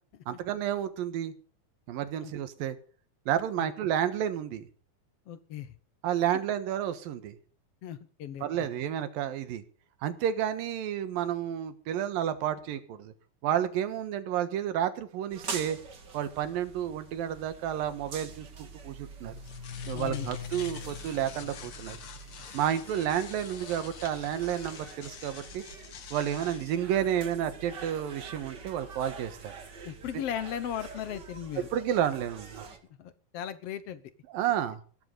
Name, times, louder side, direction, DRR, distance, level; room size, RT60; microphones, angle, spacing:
voice 1, 0.3-1.3 1.9-2.8 3.3-4.7 6.0-7.4 8.4-9.6 10.0-13.1 13.4-15.8 16.1-18.5 18.8-19.3 19.9-22.0 22.5-25.6 26.1-29.5 30.1-30.2 31.7-32.6 34.3-34.8, right 10 dB, 75° right, 11 dB, 3.1 m, -31 dB
voice 2, 5.3-5.7 6.3-6.4 7.8-8.5 19.9-20.3 29.8-31.7 33.0-34.0, left 10 dB, 70° left, 13 dB, 1.4 m, -37 dB
sound 1, 15.3-32.8, right 5 dB, 35° right, 2.3 m, -46 dB
sound 2, 19.2-26.8, left 7 dB, 55° left, 1.6 m, -43 dB
17.0 x 13.0 x 4.0 m, 0.41 s
omnidirectional pair, 4.2 m